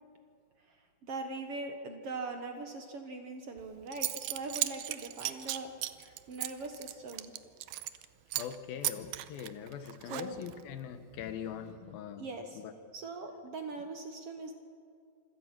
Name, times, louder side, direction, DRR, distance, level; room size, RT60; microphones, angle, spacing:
voice 1, 1.0-5.7 6.0-7.3 10.1-10.4 12.2-12.6 12.9-14.5, right 3 dB, 55° right, 5 dB, 1.8 m, -41 dB
Zipper (clothing) / Coin (dropping), 3.6-3.7 3.9-8.0 8.3-8.6 8.8-10.6, right 15 dB, 90° right, 2.5 m, -36 dB
voice 2, 8.3-12.3 12.6-12.7, left 8 dB, 90° left, 9 dB, 3.0 m, -42 dB
26.5 x 17.0 x 6.0 m, 2.3 s
omnidirectional pair, 4.1 m